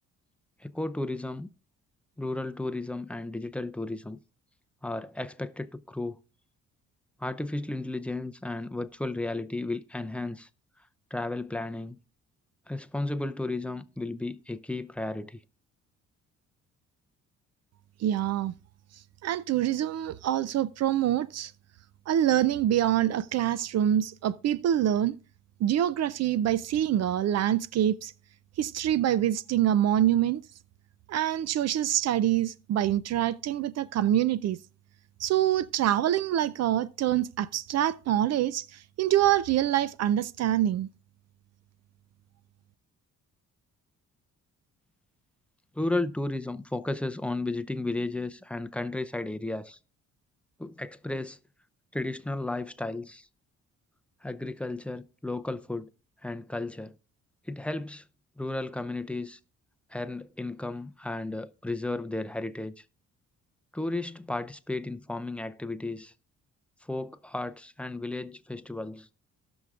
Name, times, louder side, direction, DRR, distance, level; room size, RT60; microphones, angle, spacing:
voice 1, 0.6-1.5 2.2-4.2 4.8-6.2 7.2-10.5 11.1-12.0 12.7-15.4 45.7-49.8 50.6-51.4 51.9-53.3 54.2-55.9 56.2-56.9 57.5-58.0 58.4-59.4 59.9-62.8 63.7-66.1 66.8-69.1, left 2 dB, 5° left, 0.5 m, -34 dB
voice 2, 18.0-18.5 19.2-21.5 22.1-25.2 25.6-28.1 28.6-30.4 31.1-34.6 35.2-40.9, right 11 dB, 60° right, 0.5 m, -25 dB
18.0 x 6.1 x 2.4 m
cardioid pair, 90°, 30 cm